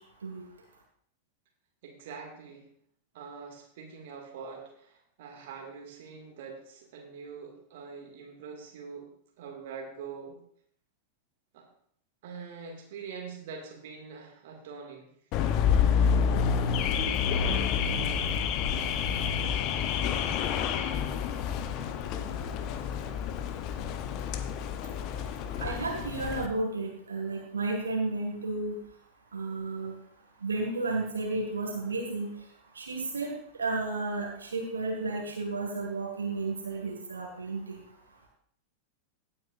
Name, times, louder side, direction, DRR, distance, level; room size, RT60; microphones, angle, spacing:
voice 1, 1.8-2.7 3.1-9.1 9.4-10.4 11.5-11.7 12.2-15.1 35.0-35.3, right 5 dB, 55° right, 1 dB, 2.2 m, -44 dB
Car / Alarm, 15.3-26.5, left 7 dB, 40° left, 0.9 m, -28 dB
voice 2, 25.6-28.8 29.3-29.9 30.4-32.3 32.8-37.8, right 3 dB, 70° right, 0 dB, 2.0 m, -32 dB
17.0 x 8.7 x 2.6 m, 0.64 s
figure-of-eight pair, 90°, 0 cm